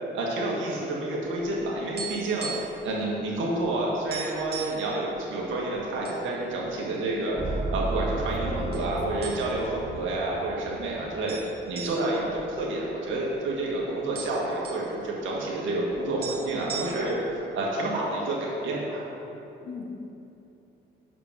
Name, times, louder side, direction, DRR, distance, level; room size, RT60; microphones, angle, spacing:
voice 1, 0.1-2.5 2.8-7.4 7.7-11.4 11.7-19.0, right 2 dB, 80° right, -3 dB, 1.7 m, -29 dB
sound 1, 1.8-2.9 3.1-3.3 3.7-3.8 4.1-4.8 5.5-6.2 6.6-6.7 7.4-8.0 8.7-8.9 9.2-9.7 10.1-10.2 11.3-13.3 13.6-13.7 13.9-14.9 15.9-16.0 16.2-17.3, right 6 dB, 55° right, 1.8 m, -38 dB
sound 2, 7.4-12.1, right 2 dB, 25° right, 0.7 m, -34 dB
voice 2, 8.4-9.4 19.6-19.9, left 4 dB, 70° left, -2 dB, 1.3 m, -39 dB
6.3 x 5.0 x 6.1 m, 2.9 s
cardioid pair, 90°, 20 cm